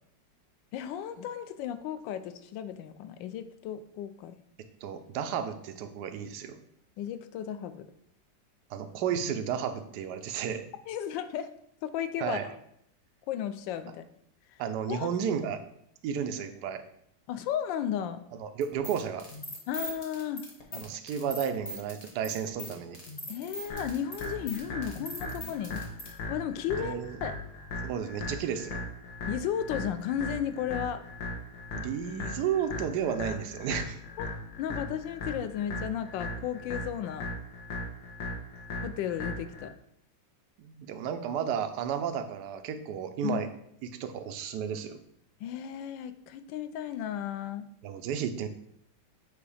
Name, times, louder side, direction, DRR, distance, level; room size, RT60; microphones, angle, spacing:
voice 1, 0.7-4.3 7.0-7.9 10.9-11.5 11.8-12.5 13.3-14.0 14.9-15.1 17.3-18.2 19.7-20.4 23.3-25.8 26.3-27.4 29.3-31.0 34.2-34.3 34.6-37.3 38.8-39.7 43.2-43.4 45.4-47.7, left 10 dB, 90° left, 10 dB, 1.3 m, -34 dB
voice 2, 4.8-6.6 8.7-10.6 12.2-12.5 14.6-15.6 16.0-16.8 18.3-19.3 20.7-23.0 26.7-27.2 27.8-28.8 31.7-34.0 40.6-43.5 43.8-45.0 47.8-48.5, right 8 dB, 70° right, 8 dB, 1.2 m, -32 dB
sound 1, 18.6-26.1, equal, 25° left, 1.0 m, -41 dB
sound 2, 23.7-39.7, left 2 dB, 60° left, 1.6 m, -38 dB
8.0 x 2.8 x 4.8 m, 0.71 s
omnidirectional pair, 2.0 m